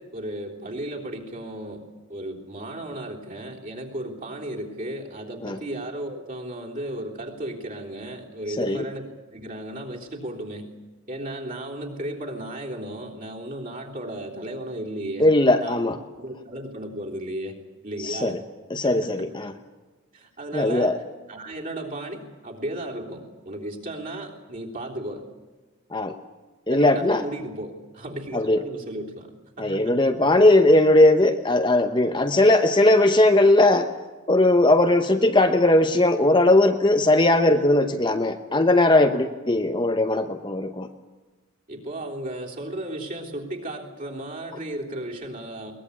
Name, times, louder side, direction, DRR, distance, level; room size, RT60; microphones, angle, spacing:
voice 1, 0.0-1.8 2.1-10.7 11.1-15.3 15.6-17.6 17.8-18.4 18.8-19.3 20.1-21.0 21.3-25.2 26.7-29.3 29.6-30.0 41.7-45.7, right 1 dB, 35° right, -2 dB, 3.5 m, -35 dB
voice 2, 15.2-16.0 18.0-18.4 18.7-19.5 20.5-21.0 25.9-26.1 26.7-27.2 28.3-28.6 29.6-33.9 34.3-40.9, left 1 dB, 20° left, 6 dB, 0.8 m, -19 dB
22.0 x 20.0 x 8.5 m, 1.3 s
head